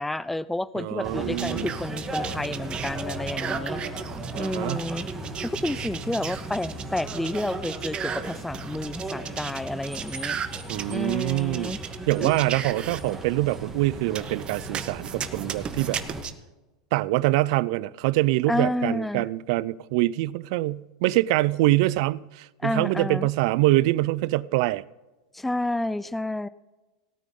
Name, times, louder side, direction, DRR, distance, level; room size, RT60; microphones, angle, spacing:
voice 1, 0.0-3.8 4.4-5.1 5.4-10.4 10.9-11.8 12.2-12.3 18.5-19.3 22.6-23.3 25.3-26.5, left 1 dB, 5° left, 0.4 m, -30 dB
voice 2, 0.8-1.7 4.3-4.8 10.7-11.7 12.1-16.0 16.9-24.8, right 18 dB, 65° right, 0.5 m, -24 dB
sound 1, 1.0-16.2, right 2 dB, 15° right, 2.2 m, -36 dB
sound 2, 1.4-13.0 14.1-16.3, right 8 dB, 30° right, 0.9 m, -35 dB
17.5 x 9.2 x 3.8 m
hypercardioid pair, 115°, 3 cm